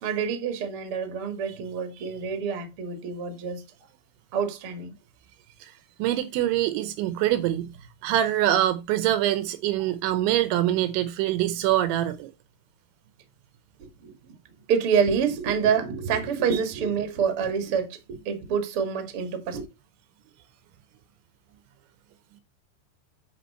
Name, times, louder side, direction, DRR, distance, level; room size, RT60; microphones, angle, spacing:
voice 1, 0.0-3.6 4.3-4.9 13.8-14.1 14.7-18.0 18.3-19.6, right 6 dB, 50° right, 1.7 m, -27 dB
voice 2, 6.0-7.7 8.0-12.3, right 12 dB, 80° right, 3.0 m, -24 dB
10.0 x 5.0 x 4.3 m
omnidirectional pair, 5.6 m